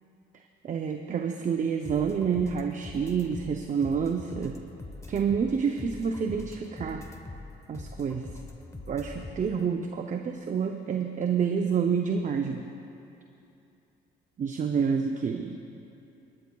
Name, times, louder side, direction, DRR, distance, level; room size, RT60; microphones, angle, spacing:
voice 1, 0.6-4.6 5.1-7.0 7.7-8.3 8.9-12.7 14.4-15.6, right 6 dB, 40° right, 4 dB, 0.6 m, -28 dB
sound 1, 1.8-9.6, left 2 dB, 15° left, 0.9 m, -43 dB
28.5 x 9.6 x 2.3 m, 2.8 s
cardioid pair, 90°, 20 cm